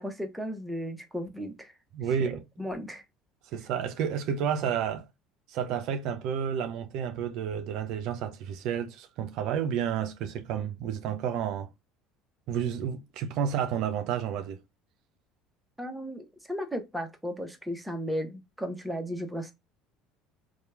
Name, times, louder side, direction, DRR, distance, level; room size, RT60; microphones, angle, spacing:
voice 1, 0.0-1.7 2.2-2.3 2.6-3.0 15.8-19.5, equal, 5° right, 0.8 m, -35 dB
voice 2, 1.9-2.4 3.5-5.0 5.5-11.7 12.5-14.6, right 8 dB, 60° right, 0.4 m, -31 dB
2.9 x 2.2 x 2.3 m
hypercardioid pair, 70°, 0 cm